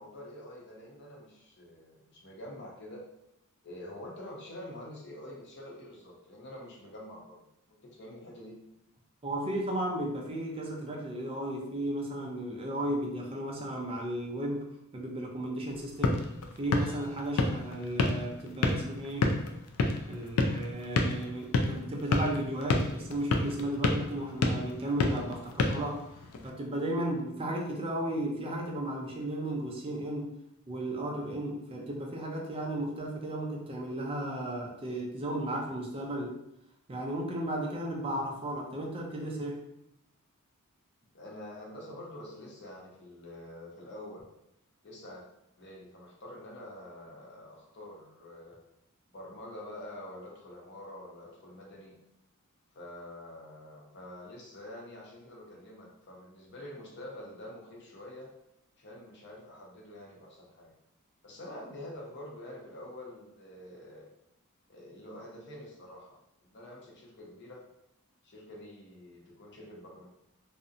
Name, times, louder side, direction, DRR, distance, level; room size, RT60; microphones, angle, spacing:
voice 1, 0.0-3.0 3.6-7.4 7.7-8.6 41.1-44.3 44.8-45.3 45.6-48.6 49.1-52.0 52.7-58.3 58.8-60.7 61.2-64.1 64.7-67.6 68.2-70.1, left 1 dB, 55° left, -2 dB, 0.7 m, -46 dB
voice 2, 9.2-16.2 16.6-19.3 20.1-26.0 26.4-30.3 30.7-36.4 36.9-39.6, right 1 dB, 25° right, 0 dB, 0.4 m, -34 dB
sound 1, 15.7-26.5, left 3 dB, 80° left, 0.3 m, -31 dB
2.6 x 2.0 x 2.4 m, 0.80 s
head